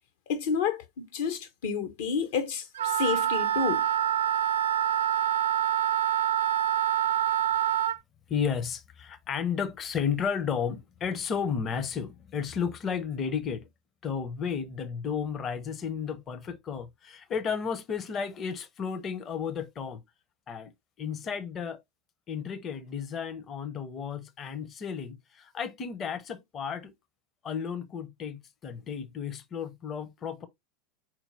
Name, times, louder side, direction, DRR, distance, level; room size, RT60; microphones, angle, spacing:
voice 1, 0.3-3.9, left 6 dB, 60° left, 0.9 m, -30 dB
Wind instrument woodwind instrument, 2.7-8.0, right 11 dB, 70° right, 0.4 m, -26 dB
voice 2, 8.3-13.6 14.0-20.0 20.5-20.7 21.0-21.8 22.3-26.9 27.4-30.5, left 7 dB, 30° left, 0.8 m, -33 dB
4.5 x 4.3 x 2.7 m
figure-of-eight pair, 85°, 0 cm